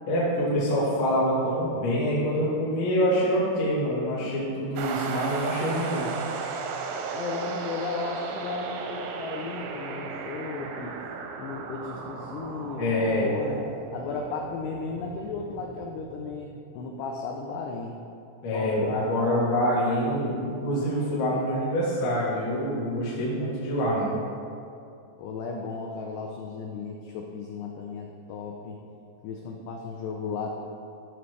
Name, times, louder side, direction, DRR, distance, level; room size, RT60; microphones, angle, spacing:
voice 1, 0.1-6.1 12.8-13.3 18.4-24.1, equal, 70° left, -8 dB, 3.9 m, -26 dB
sound 1, 4.8-16.4, right 5 dB, 90° right, 3.3 m, -36 dB
voice 2, 7.1-10.9 11.4-13.6 13.9-18.0 18.5-19.0 25.2-28.8 29.2-30.6, left 4 dB, 85° left, 1 dB, 2.4 m, -35 dB
13.5 x 6.1 x 3.2 m, 2.5 s
omnidirectional pair, 5.5 m